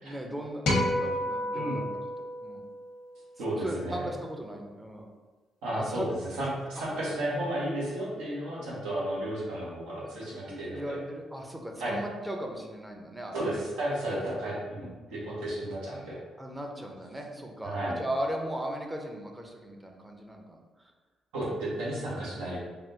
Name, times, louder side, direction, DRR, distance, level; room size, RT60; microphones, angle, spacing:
voice 1, 0.0-2.6 3.5-5.1 5.8-6.1 6.8-6.9 10.3-13.6 16.4-20.9, right 1 dB, 15° right, 2 dB, 0.6 m, -38 dB
sound 1, 0.7-3.1, left 1 dB, 75° left, 0.8 m, -30 dB
voice 2, 3.4-4.1 5.6-11.0 11.8-12.0 13.3-16.2 17.6-18.0 21.3-22.6, right 1 dB, 85° right, -7 dB, 1.0 m, -33 dB
3.4 x 2.3 x 2.7 m, 1.4 s
supercardioid pair, 50°, 0 cm